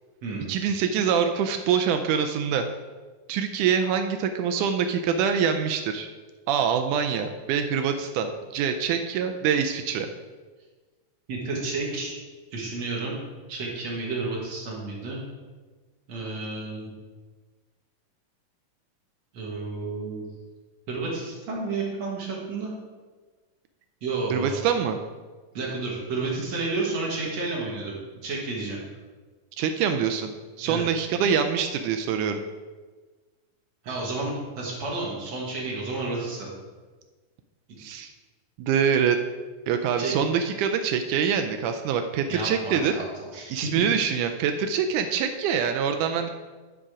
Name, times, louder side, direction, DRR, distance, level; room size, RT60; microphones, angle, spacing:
voice 1, 0.5-2.7 3.3-6.1 6.5-10.1 24.3-25.0 29.6-30.3 30.6-32.4 37.8-38.1 38.6-39.2 39.7-42.9 43.5-46.3, right 7 dB, 80° right, 6 dB, 1.9 m, -25 dB
voice 2, 11.3-12.1 12.5-13.2 13.5-15.2 16.1-16.9 19.3-20.2 20.9-22.7 24.0-24.5 25.5-27.9 28.2-28.8 30.6-30.8 33.8-36.5 40.0-40.1 42.3-43.8, right 3 dB, 55° right, -4 dB, 2.7 m, -31 dB
10.0 x 5.2 x 4.9 m, 1.4 s
omnidirectional pair, 3.8 m